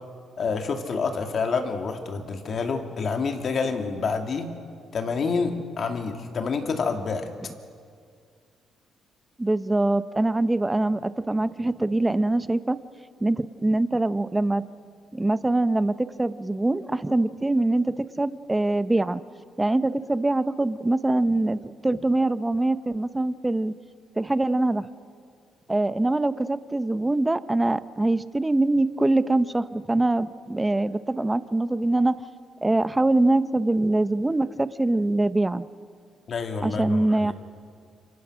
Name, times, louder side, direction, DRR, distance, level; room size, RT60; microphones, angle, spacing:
voice 1, 0.4-4.5 4.9-7.5 36.3-37.3, left 4 dB, 50° left, 5 dB, 2.7 m, -28 dB
voice 2, 9.4-12.8 13.2-14.6 15.1-19.2 19.6-23.8 24.2-24.9 25.7-32.2 32.6-35.7 36.6-37.3, right 2 dB, 15° right, 14 dB, 0.8 m, -23 dB
28.5 x 25.5 x 6.3 m, 2.2 s
cardioid pair, 90°, 0 cm